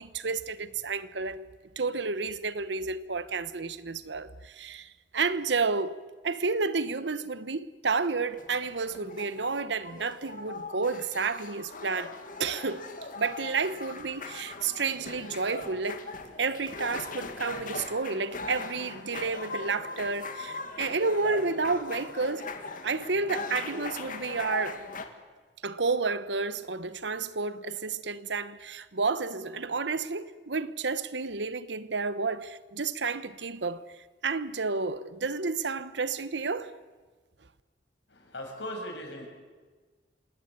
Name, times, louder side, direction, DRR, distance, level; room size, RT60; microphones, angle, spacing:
voice 1, 0.0-1.5 1.8-12.1 12.4-12.9 13.2-16.0 16.4-22.5 22.8-24.8 25.6-33.8 34.2-36.7, right 4 dB, 70° right, 1.1 m, -31 dB
sound 1, 8.1-25.1, left 4 dB, 50° left, 2.2 m, -40 dB
voice 2, 38.1-39.3, equal, 75° left, 6.7 m, -38 dB
27.0 x 18.0 x 9.7 m
head